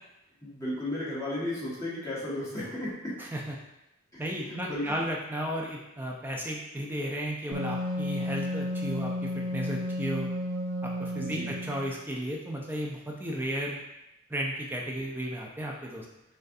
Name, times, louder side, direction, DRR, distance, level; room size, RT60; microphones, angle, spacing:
voice 1, 0.4-3.2 4.1-4.2 4.5-5.0 11.1-11.5, left 1 dB, 15° left, -9 dB, 1.4 m, -34 dB
voice 2, 3.2-3.5 4.2-10.3 10.8-13.8 14.3-16.1, equal, 10° right, -2 dB, 0.5 m, -34 dB
Wind instrument woodwind instrument, 7.5-11.9, left 1 dB, 75° right, 0.8 m, -32 dB
6.4 x 2.5 x 2.5 m, 0.90 s
head